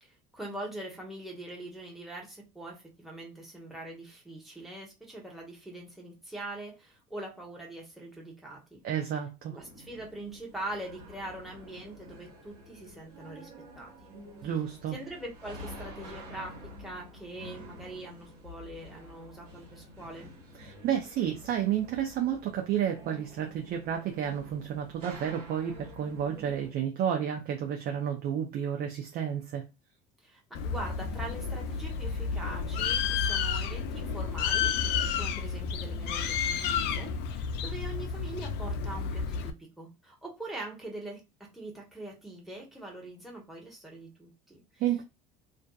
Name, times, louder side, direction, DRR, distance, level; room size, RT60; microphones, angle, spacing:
voice 1, 0.0-8.8 9.5-13.5 13.8-14.1 14.9-20.3 30.2-44.8, right 1 dB, ahead, 1.0 m, -43 dB
voice 2, 8.8-9.6 14.4-15.0 20.6-29.6 44.8-45.0, right 9 dB, 55° right, 0.6 m, -31 dB
sound 1, 9.6-26.7, equal, 75° right, 1.3 m, -49 dB
Bird, 30.5-39.5, left 6 dB, 60° left, 0.4 m, -31 dB
2.5 x 2.3 x 2.3 m
hypercardioid pair, 80°, 20 cm